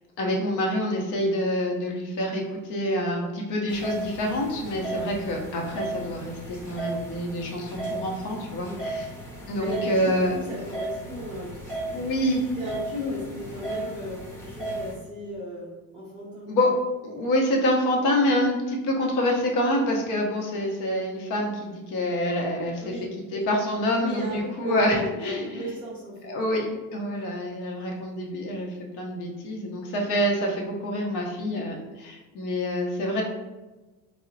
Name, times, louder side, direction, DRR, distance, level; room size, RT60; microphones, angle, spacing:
voice 1, 0.2-9.1 9.5-10.3 11.9-12.4 16.5-16.7 17.0-22.9 23.3-25.7 26.3-33.2, left 1 dB, 45° left, 0 dB, 0.7 m, -27 dB
sound 1, 3.7-14.9, right 1 dB, 5° left, 0.8 m, -35 dB
voice 2, 9.6-12.0 12.6-16.5 22.8-23.1 24.0-26.3 27.1-27.2, left 1 dB, 10° right, -8 dB, 0.5 m, -35 dB
3.6 x 2.0 x 2.6 m, 1.1 s
cardioid pair, 145°, 42 cm